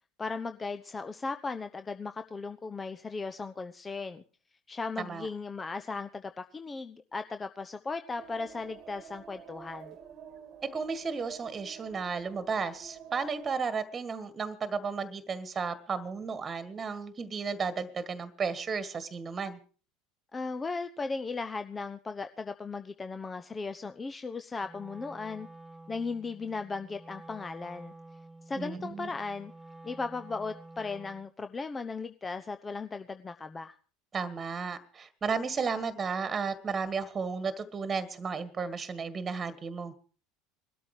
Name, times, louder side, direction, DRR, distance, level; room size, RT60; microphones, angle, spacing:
voice 1, 0.2-4.2 4.7-10.0 20.3-25.5 25.9-27.9 28.5-29.5 29.8-33.7, left 4 dB, 20° left, 9 dB, 1.0 m, -37 dB
sound 1, 8.2-13.6, right 8 dB, 45° right, 1.5 m, -49 dB
voice 2, 10.7-19.6 28.6-29.1 34.1-39.9, right 5 dB, 25° right, 14 dB, 1.8 m, -34 dB
Wind instrument woodwind instrument, 24.6-31.3, right 2 dB, 5° right, 2.1 m, -50 dB
20.0 x 13.0 x 5.0 m, 0.39 s
figure-of-eight pair, 75°, 0 cm